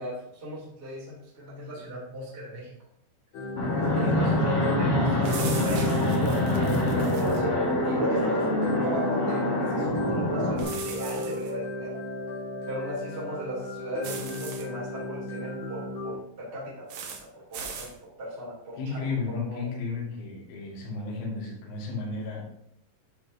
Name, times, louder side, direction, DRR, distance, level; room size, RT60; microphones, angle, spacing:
voice 1, 0.0-2.7 3.6-6.5 6.9-12.0 12.7-19.7, equal, 15° right, -7 dB, 2.7 m, -37 dB
sound 1, 3.3-16.1, left 1 dB, 50° left, 2.7 m, -36 dB
Fixed-wing aircraft airplane, 3.6-10.6, left 1 dB, 30° left, 2.0 m, -25 dB
voice 2, 4.0-4.4 18.8-22.4, left 4 dB, 80° left, -3 dB, 4.4 m, -33 dB
sound 2, 5.2-7.4 10.6-11.5 14.0-14.6 16.9-17.2 17.5-17.9, right 5 dB, 70° right, 2.4 m, -38 dB
12.0 x 5.9 x 2.8 m, 0.70 s
omnidirectional pair, 5.3 m